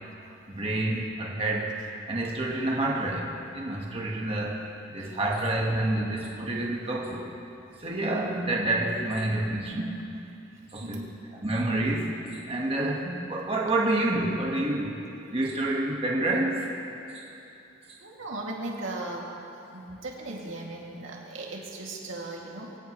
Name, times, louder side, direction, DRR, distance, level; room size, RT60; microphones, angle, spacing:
voice 1, 0.5-1.8 2.1-4.6 4.9-7.3 7.8-10.1 10.7-11.1 11.4-12.1 12.5-15.0 15.3-16.7 17.1-17.3 17.9-18.0, right 2 dB, 30° right, -2 dB, 1.6 m, -28 dB
voice 2, 10.8-11.1 18.0-19.4 19.6-22.8, right 2 dB, 75° right, -2 dB, 2.5 m, -37 dB
23.5 x 17.0 x 3.2 m, 2.8 s
head